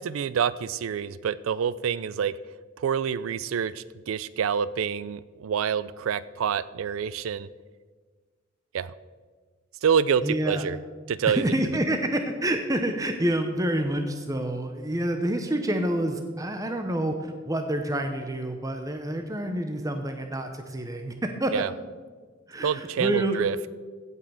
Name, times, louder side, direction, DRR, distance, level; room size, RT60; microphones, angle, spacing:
voice 1, 0.0-2.3 2.8-7.5 8.7-8.9 9.8-10.8 11.1-11.4 21.5-21.7 22.6-23.6, right 7 dB, 90° right, 17 dB, 0.4 m, -27 dB
voice 2, 10.2-10.7 11.3-21.1 21.4-21.6 22.5-23.4, right 1 dB, 15° right, 5 dB, 0.7 m, -28 dB
15.5 x 5.6 x 6.3 m, 1.5 s
head